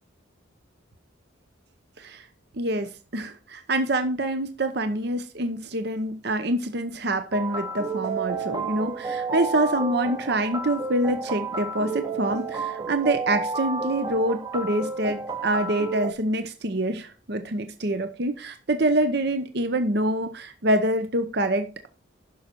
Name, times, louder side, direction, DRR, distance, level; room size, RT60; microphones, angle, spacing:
voice 1, 2.5-21.9, right 1 dB, 55° right, 0.8 m, -26 dB
sound 1, 7.3-16.1, right 4 dB, 20° right, 0.8 m, -31 dB
11.0 x 6.4 x 4.5 m
head